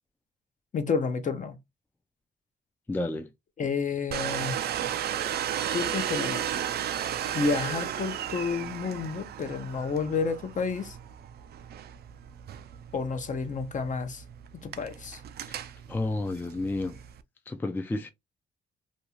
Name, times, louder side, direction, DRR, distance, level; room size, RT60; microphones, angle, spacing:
voice 1, 0.7-1.6 3.6-4.6 5.7-6.5 7.3-11.0 12.9-14.2 14.6-15.2, left 5 dB, 45° left, 0.7 m, -30 dB
voice 2, 2.9-3.3 15.5-17.0 17.5-18.1, left 2 dB, 10° left, 0.4 m, -31 dB
Domestic sounds home sounds, 4.1-17.2, right 10 dB, 60° right, 0.4 m, -34 dB
2.6 x 2.3 x 2.9 m
cardioid pair, 75°, 18 cm